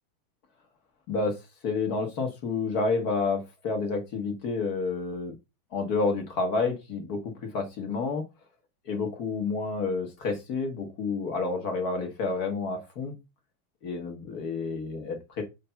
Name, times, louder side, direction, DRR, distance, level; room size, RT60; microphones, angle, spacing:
voice 1, 1.1-5.3 5.7-8.2 8.8-13.1 13.8-15.4, left 4 dB, 50° left, 5 dB, 1.4 m, -29 dB
6.7 x 3.3 x 5.5 m, 0.25 s
omnidirectional pair, 2.3 m